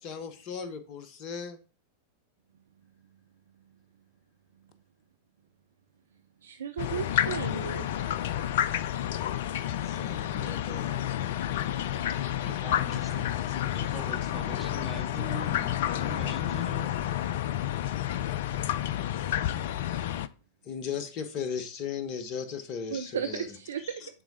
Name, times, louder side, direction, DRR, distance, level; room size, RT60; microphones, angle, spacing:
voice 1, 0.0-1.6 9.8-11.0 13.1-13.2 20.6-24.1, left 6 dB, 40° left, 11 dB, 1.1 m, -37 dB
voice 2, 6.4-7.9 22.9-23.8, right 8 dB, 65° right, 8 dB, 0.5 m, -34 dB
sound 1, 6.8-20.3, left 11 dB, 55° left, 0.4 m, -30 dB
voice 3, 12.4-17.0, equal, ahead, 4 dB, 1.7 m, -43 dB
9.4 x 4.6 x 2.7 m, 0.36 s
figure-of-eight pair, 90°, 0 cm